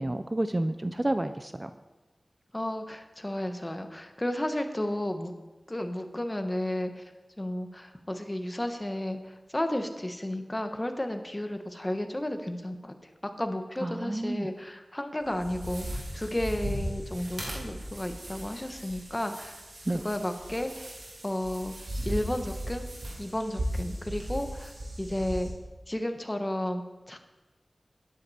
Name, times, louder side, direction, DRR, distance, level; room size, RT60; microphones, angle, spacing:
voice 1, 0.0-1.7 13.8-14.5 19.9-20.0, right 1 dB, 30° right, 10 dB, 0.5 m, -30 dB
voice 2, 2.5-5.3 5.7-7.0 7.4-12.9 13.2-19.6 19.9-20.9 21.2-21.7 22.0-22.8 23.2-25.5 25.9-27.2, left 1 dB, 25° left, 7 dB, 1.2 m, -33 dB
sound 1, 15.2-25.5, right 1 dB, 85° right, 3.1 m, -37 dB
11.5 x 10.0 x 4.3 m, 1.1 s
wide cardioid pair, 50°, 0 cm